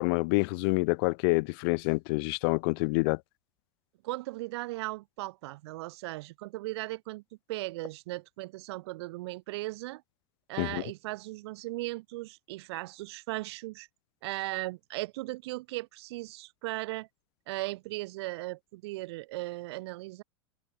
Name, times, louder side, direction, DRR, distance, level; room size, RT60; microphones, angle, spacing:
voice 1, 0.0-3.2 10.6-10.8, left 30 dB, 55° left, 0.7 m, -27 dB
voice 2, 4.0-7.2 7.5-10.0 10.5-13.9 14.2-17.1 17.5-20.2, right 20 dB, 65° right, 4.1 m, -37 dB
hypercardioid pair, 95°, 15 cm